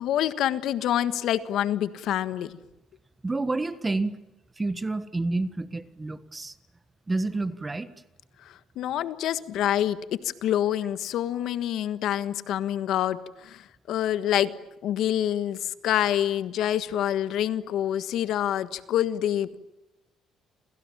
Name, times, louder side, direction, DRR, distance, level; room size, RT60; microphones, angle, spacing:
voice 1, 0.0-2.6 8.4-14.5 14.8-19.6, left 11 dB, 70° left, 13 dB, 1.4 m, -27 dB
voice 2, 3.2-4.2 4.6-6.6 7.1-7.9, right 2 dB, 15° right, 13 dB, 1.5 m, -29 dB
28.5 x 28.0 x 7.4 m, 0.93 s
cardioid pair, 135°, 0 cm